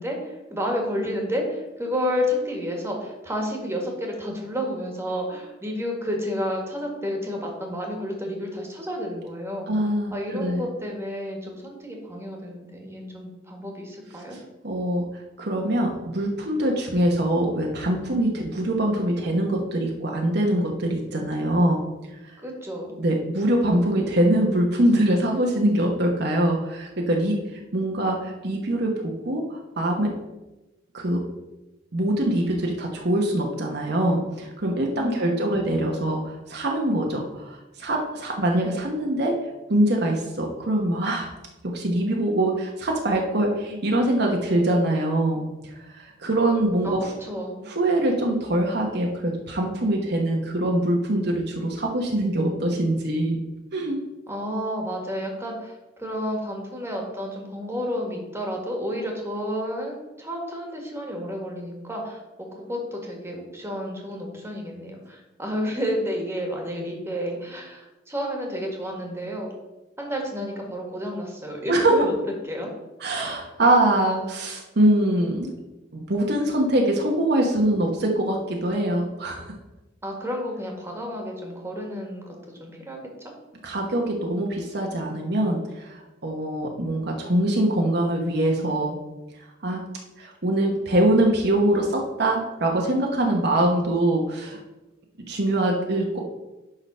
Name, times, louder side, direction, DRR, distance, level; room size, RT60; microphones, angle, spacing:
voice 1, 0.0-9.7 10.1-14.4 22.4-23.0 34.9-35.7 46.8-47.6 54.3-69.5 70.0-72.1 72.4-72.7 80.0-82.3 82.6-83.0, equal, 15° right, 0 dB, 1.8 m, -31 dB
voice 2, 9.7-10.7 14.6-15.0 15.4-21.8 22.3-22.4 23.0-30.1 30.9-31.2 31.9-39.3 39.7-41.3 41.6-47.0 47.7-53.4 53.7-54.0 71.7-72.0 73.0-75.5 75.9-79.5 83.6-89.0 89.6-89.8 90.2-94.6 95.3-96.2, right 1 dB, 60° right, 0 dB, 1.2 m, -23 dB
10.5 x 3.9 x 5.6 m, 1.0 s
head